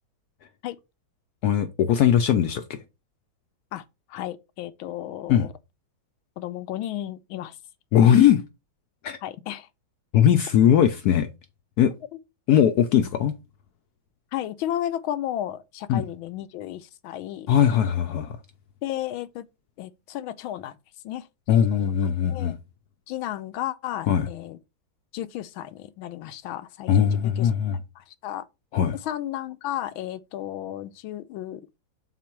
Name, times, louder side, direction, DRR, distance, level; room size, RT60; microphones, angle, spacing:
voice 1, 1.4-2.8 5.3-5.5 7.9-8.4 9.0-9.2 10.1-11.3 11.8-11.9 12.5-13.3 15.9-16.0 17.5-18.4 21.5-22.6 24.1-24.3 26.9-27.8 28.7-29.0, left 9 dB, 75° left, 0.9 m, -20 dB
voice 2, 4.1-5.5 6.4-7.6 9.2-9.7 14.3-17.5 18.8-19.5 19.8-20.8 21.0-21.3 21.7-22.0 22.3-22.5 23.1-24.6 25.1-27.5 28.0-28.5 29.0-31.8, left 12 dB, 90° left, 1.4 m, -33 dB
6.0 x 4.1 x 4.5 m
omnidirectional pair, 2.2 m